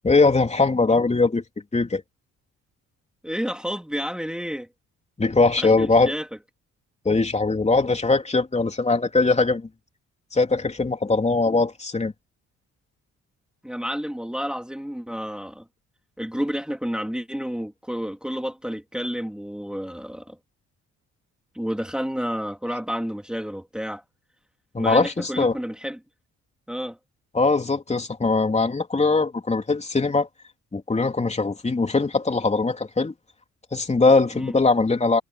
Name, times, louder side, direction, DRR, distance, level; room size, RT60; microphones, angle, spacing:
voice 1, 0.0-1.4 1.7-2.0 5.2-6.1 7.1-9.7 10.3-12.1 24.7-25.6 27.3-30.3 30.7-33.1 33.7-35.2, left 3 dB, 20° left, 3.5 m, -21 dB
voice 2, 3.2-4.7 5.6-6.3 13.6-15.6 16.2-20.4 21.5-24.0 24.8-26.0 26.7-27.0 34.3-34.6, equal, 5° right, 3.0 m, -30 dB
cardioid pair, 90°, 30 cm